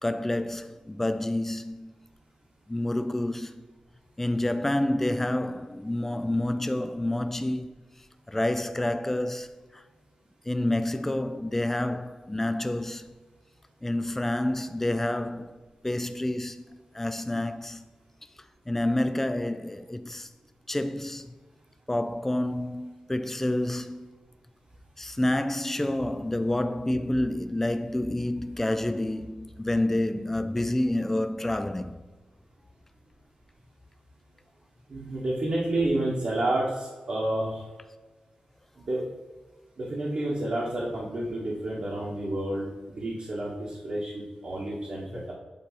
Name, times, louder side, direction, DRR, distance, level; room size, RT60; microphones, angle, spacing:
voice 1, 0.0-1.9 2.7-3.5 4.2-7.8 8.3-9.8 10.5-13.1 13.8-15.6 15.8-17.9 18.7-20.3 20.7-21.3 21.9-24.1 25.0-32.0 45.1-45.2, left 1 dB, 10° left, 0.3 m, -28 dB
voice 2, 34.9-37.6 38.8-39.0 39.8-45.3, right 1 dB, 55° right, 1.3 m, -30 dB
8.7 x 3.3 x 4.1 m
wide cardioid pair, 120°, 3 cm